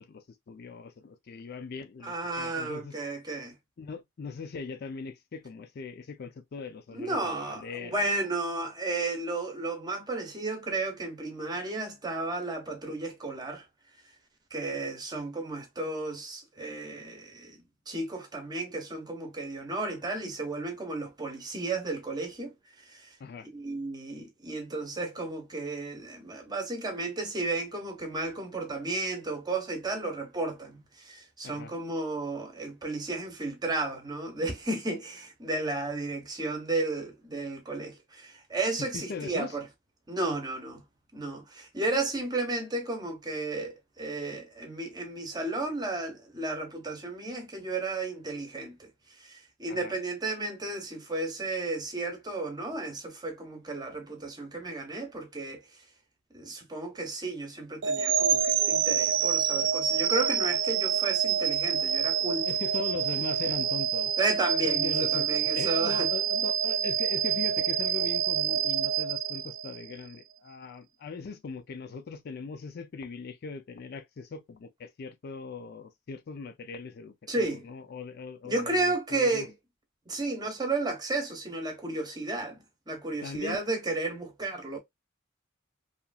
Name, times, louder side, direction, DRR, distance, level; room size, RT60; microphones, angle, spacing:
voice 1, 0.0-3.0 3.8-8.1 23.2-23.5 31.4-31.7 38.9-39.6 49.7-50.0 62.5-64.1 64.6-65.3 65.5-79.5 83.2-83.6, left 4 dB, 50° left, 0.4 m, -40 dB
voice 2, 2.0-3.5 6.9-13.6 14.5-17.6 17.9-22.5 22.9-23.1 23.5-39.6 40.1-40.8 41.1-48.9 49.2-55.6 56.3-62.5 64.2-66.1 77.3-77.6 78.4-79.5 80.1-82.6 82.9-84.8, right 2 dB, 20° right, 0.7 m, -33 dB
sound 1, 57.8-69.9, right 8 dB, 65° right, 0.4 m, -27 dB
2.8 x 2.4 x 2.3 m
head